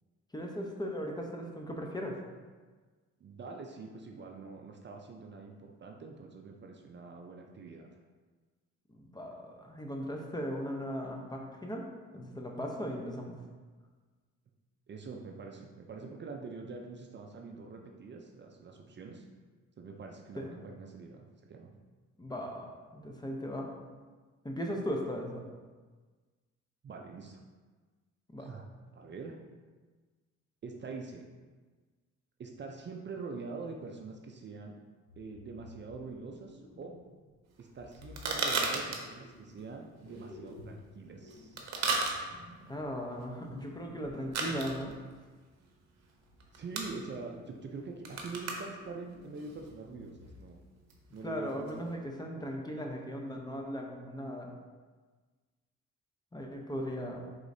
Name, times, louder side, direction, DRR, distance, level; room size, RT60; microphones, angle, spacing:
voice 1, 0.3-2.2 8.9-11.8 12.1-13.4 20.4-20.5 22.2-23.7 24.4-25.4 28.3-28.5 42.7-45.0 51.2-54.5 56.3-57.2, equal, 15° left, 0 dB, 0.6 m, -38 dB
voice 2, 3.2-7.9 14.9-19.3 19.8-21.7 26.8-27.4 28.4-28.7 28.9-29.4 30.6-31.3 32.4-34.7 35.2-37.0 37.6-41.7 46.5-50.6 51.1-52.0, right 4 dB, 40° right, 2 dB, 0.5 m, -44 dB
sound 1, 35.1-37.3 37.7-39.7 40.0-45.0 46.0-46.9 47.3-48.3 48.7-50.7 50.9-51.1 51.6-51.7, left 2 dB, 60° left, 0.9 m, -54 dB
sound 2, 37.5-51.9, right 3 dB, 60° right, 0.8 m, -37 dB
5.0 x 3.7 x 2.6 m, 1.4 s
cardioid pair, 90°, 30 cm